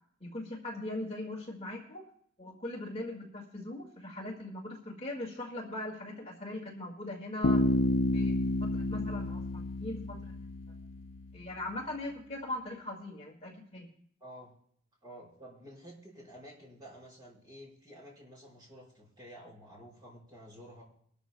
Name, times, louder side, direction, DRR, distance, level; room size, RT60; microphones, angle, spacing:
voice 1, 0.2-2.0 2.4-7.6 8.1-8.4 8.6-10.3 11.3-13.9, left 1 dB, 30° left, -2 dB, 2.1 m, -40 dB
Bass guitar, 7.4-11.2, left 2 dB, 70° left, 0.6 m, -30 dB
voice 2, 14.2-14.5 15.0-20.8, equal, 20° right, -5 dB, 5.1 m, -51 dB
22.0 x 13.0 x 2.3 m, 0.64 s
head